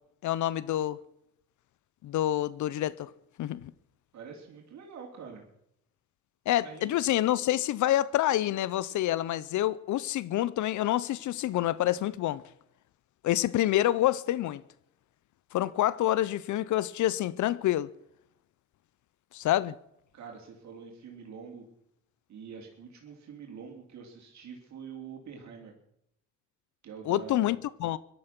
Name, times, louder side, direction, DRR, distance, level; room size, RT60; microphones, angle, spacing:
voice 1, 0.2-1.0 2.0-3.1 3.4-3.7 6.5-12.4 13.2-14.6 15.5-17.9 19.3-19.7 27.1-28.0, left 13 dB, 75° left, 0.7 m, -27 dB
voice 2, 4.1-5.4 6.6-7.1 20.1-21.6 22.3-25.7 26.8-27.5, right 6 dB, 65° right, 3.6 m, -45 dB
17.5 x 12.5 x 6.0 m
cardioid pair, 90°, 30 cm